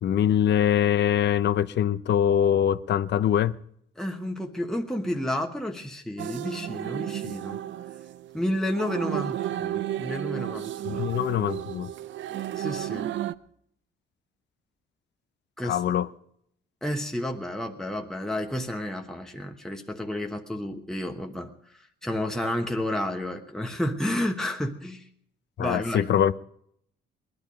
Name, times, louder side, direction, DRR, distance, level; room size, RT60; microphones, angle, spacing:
voice 1, 0.0-3.6 10.9-11.9 15.6-16.1 25.6-26.4, left 9 dB, 60° left, 0.7 m, -23 dB
voice 2, 4.0-7.6 8.3-11.1 12.6-13.1 15.6-15.8 16.8-25.1 25.6-26.1, left 1 dB, 5° left, 1.1 m, -31 dB
sound 1, 6.2-13.3, right 12 dB, 70° right, 0.6 m, -33 dB
19.5 x 11.5 x 5.2 m
cardioid pair, 90°, 20 cm